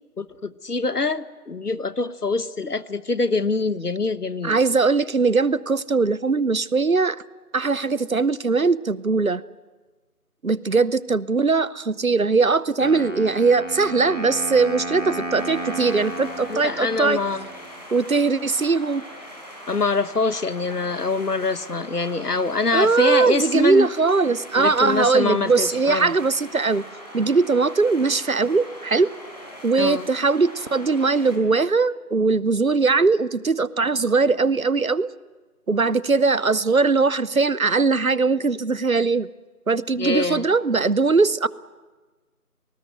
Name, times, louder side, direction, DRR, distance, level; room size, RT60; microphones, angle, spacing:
voice 1, 0.2-4.6 16.5-17.5 19.7-23.9 24.6-26.1 29.8-30.1 40.0-40.5, left 3 dB, 80° left, 15 dB, 1.2 m, -25 dB
voice 2, 4.4-7.2 7.5-9.4 10.4-17.2 17.9-19.0 22.7-26.9 27.1-29.1 29.6-35.1 35.7-39.3 39.7-41.5, right 4 dB, 65° right, 20 dB, 0.8 m, -20 dB
Wind instrument woodwind instrument, 12.8-17.7, right 1 dB, 55° left, 2.5 m, -33 dB
sound 1, 15.3-31.4, equal, 25° left, 4.5 m, -41 dB
27.5 x 19.5 x 7.9 m, 1.3 s
figure-of-eight pair, 180°, 45 cm